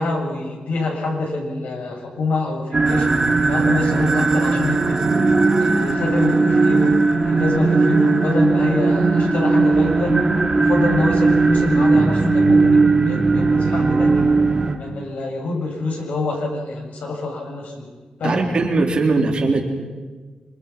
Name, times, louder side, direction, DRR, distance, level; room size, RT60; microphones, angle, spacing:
voice 1, 0.0-3.1 3.4-5.1 5.6-10.2 10.5-14.2 14.8-17.9 18.2-18.5, left 2 dB, 75° left, 0 dB, 7.6 m, -26 dB
sound 1, 2.7-14.7, right 3 dB, 20° right, 3.3 m, -17 dB
voice 2, 18.2-19.6, right 3 dB, 40° right, 0 dB, 3.9 m, -19 dB
27.5 x 27.0 x 6.1 m, 1.3 s
wide cardioid pair, 150°, 3 cm